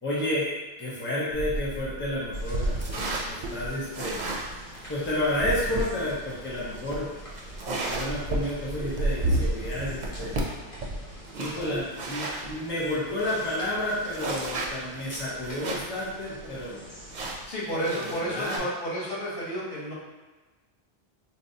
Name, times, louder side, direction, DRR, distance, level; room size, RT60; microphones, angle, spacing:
voice 1, 0.0-4.4 4.9-7.1 7.7-10.4 11.4-16.8 17.7-18.6, left 1 dB, 15° left, -7 dB, 0.7 m, -31 dB
sound 1, 1.3-12.5 12.9-13.0 13.2-16.0 16.4-16.5 17.1-18.6, right 2 dB, 55° right, 0.5 m, -32 dB
sound 2, 2.3-17.5, equal, 35° left, 1.0 m, -47 dB
voice 2, 17.4-19.9, equal, 70° left, -8 dB, 1.2 m, -31 dB
4.1 x 2.1 x 2.7 m, 1.2 s
omnidirectional pair, 1.1 m